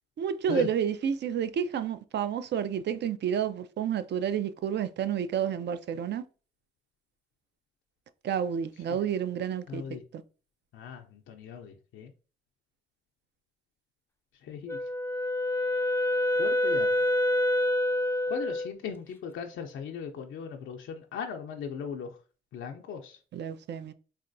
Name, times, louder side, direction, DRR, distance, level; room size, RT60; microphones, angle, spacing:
voice 1, 0.2-6.2 8.2-9.8 10.1-10.2 23.3-23.9, right 8 dB, 65° right, 0.4 m, -30 dB
voice 2, 9.7-10.0 10.7-12.1 14.4-14.8 16.4-17.1 18.3-22.1 22.5-23.2, left 6 dB, 90° left, 0.4 m, -38 dB
Wind instrument woodwind instrument, 14.7-18.7, left 1 dB, 10° left, 0.4 m, -27 dB
4.0 x 2.2 x 2.5 m
cardioid pair, 75°, 20 cm